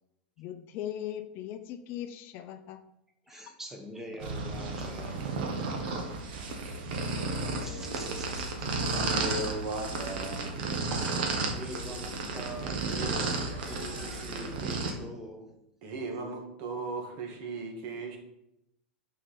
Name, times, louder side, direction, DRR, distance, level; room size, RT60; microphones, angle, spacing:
voice 1, 0.4-2.8 3.3-3.4, left 11 dB, 45° left, 9 dB, 0.5 m, -39 dB
voice 2, 3.3-5.5 7.6-8.7 11.0-11.1 11.5-15.6, equal, 5° right, 2 dB, 1.3 m, -44 dB
sound 1, 4.2-14.9, right 3 dB, 70° right, 1.4 m, -33 dB
sound 2, 7.2-14.6, left 2 dB, 15° left, 2.4 m, -49 dB
voice 3, 8.9-10.7 15.8-18.2, right 2 dB, 55° right, 3 dB, 1.8 m, -37 dB
6.1 x 4.7 x 5.9 m, 0.84 s
supercardioid pair, 135°, 5 cm